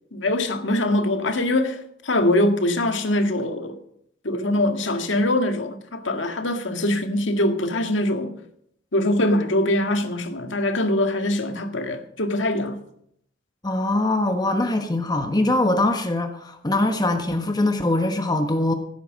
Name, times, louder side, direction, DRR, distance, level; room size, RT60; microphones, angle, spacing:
voice 1, 0.1-3.8 4.2-8.3 8.9-12.8, left 1 dB, 80° left, 1.9 m, -23 dB
voice 2, 13.6-18.7, left 2 dB, 20° left, 1.2 m, -22 dB
16.0 x 9.3 x 6.4 m
head